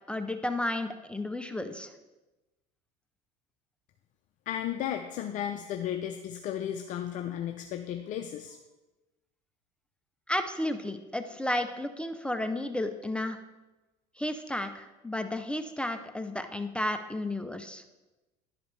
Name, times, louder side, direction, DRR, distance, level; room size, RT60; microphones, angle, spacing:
voice 1, 0.1-1.9 10.3-13.4 14.2-17.8, left 1 dB, 5° left, 8 dB, 0.5 m, -32 dB
voice 2, 4.5-8.6, left 10 dB, 50° left, 6 dB, 0.5 m, -34 dB
11.0 x 5.0 x 3.3 m, 1.1 s
supercardioid pair, 95°, 17 cm